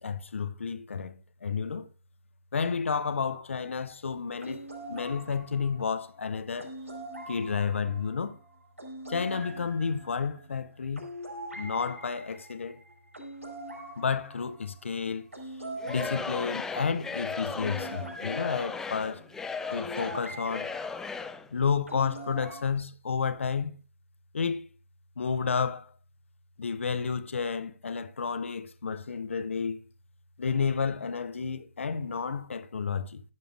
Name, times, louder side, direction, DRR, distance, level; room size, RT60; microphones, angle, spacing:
voice 1, 0.0-1.9 2.5-6.7 7.3-8.4 9.1-11.0 11.6-12.8 14.0-15.3 15.9-19.2 19.7-20.7 21.5-23.7 24.3-24.6 25.2-25.9 26.6-29.8 30.4-33.2, left 5 dB, 65° left, 0.7 m, -31 dB
sound 1, 4.4-20.8 21.9-22.6, right 1 dB, 85° right, 4.8 m, -43 dB
Singing / Crowd, 15.8-21.5, left 5 dB, 5° left, 0.5 m, -36 dB
15.0 x 6.6 x 2.5 m
figure-of-eight pair, 125°, 7 cm